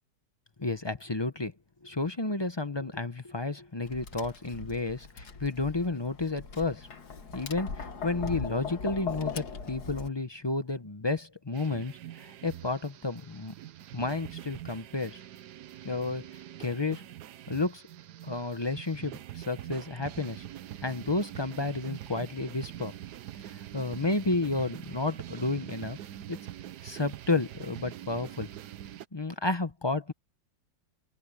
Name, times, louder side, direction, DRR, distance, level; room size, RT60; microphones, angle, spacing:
voice 1, 0.6-1.5 1.8-6.9 7.3-13.5 13.9-15.2 15.8-16.3 16.6-17.0 17.5-17.8 18.2-20.4 20.8-22.9 23.4-26.0 26.3-26.4 26.8-28.5 29.1-30.1, left 3 dB, 30° left, 0.5 m, -31 dB
Tap, 3.8-10.1, left 5 dB, 65° left, 2.3 m, -39 dB
sound 1, 11.5-29.1, right 12 dB, 70° right, 1.3 m, -44 dB
open air
omnidirectional pair, 1.9 m